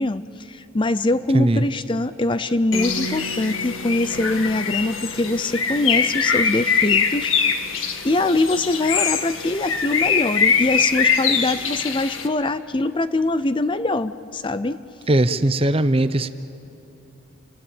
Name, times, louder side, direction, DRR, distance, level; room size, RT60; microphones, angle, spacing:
voice 1, 0.0-7.7 8.0-14.8, left 2 dB, 25° left, 13 dB, 0.5 m, -23 dB
voice 2, 1.3-1.6 15.1-16.3, right 1 dB, 30° right, 12 dB, 0.7 m, -19 dB
Bird, 2.7-12.3, left 6 dB, 80° left, 1.8 m, -23 dB
Bass guitar, 2.7-7.4 7.7-9.0, right 1 dB, 5° right, 3.1 m, -38 dB
29.0 x 19.5 x 9.0 m, 3.0 s
head